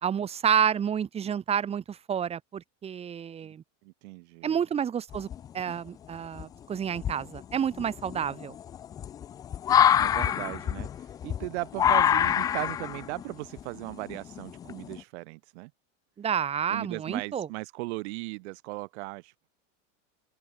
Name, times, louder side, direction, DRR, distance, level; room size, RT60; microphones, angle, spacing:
voice 1, 0.0-3.6 4.4-5.3 5.5-8.6 16.2-17.5, right 8 dB, 15° right, 1.4 m, -29 dB
voice 2, 3.8-4.6 10.0-10.9 11.2-15.7 16.7-19.5, right 24 dB, 60° right, 7.6 m, -37 dB
sound 1, 5.1-5.7 6.4-6.5 7.0-15.0, left 9 dB, 10° left, 0.3 m, -26 dB
open air
supercardioid pair, 170°, 38 cm